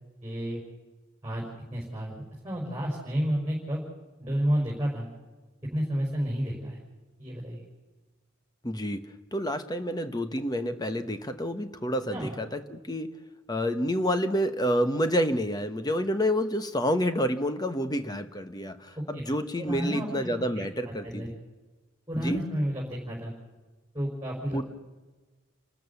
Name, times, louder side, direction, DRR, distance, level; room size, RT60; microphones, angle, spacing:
voice 1, 0.2-0.6 1.2-3.8 4.2-5.1 5.7-6.8 7.2-7.7 12.1-12.4 19.1-19.2 19.6-20.3 20.6-21.3 22.1-23.3 23.9-24.6, equal, 10° right, -3 dB, 5.2 m, -31 dB
voice 2, 8.6-9.0 9.3-13.1 13.5-21.4 22.1-22.4 24.5-24.6, equal, 20° left, 9 dB, 1.1 m, -28 dB
29.5 x 13.5 x 7.1 m, 1.2 s
head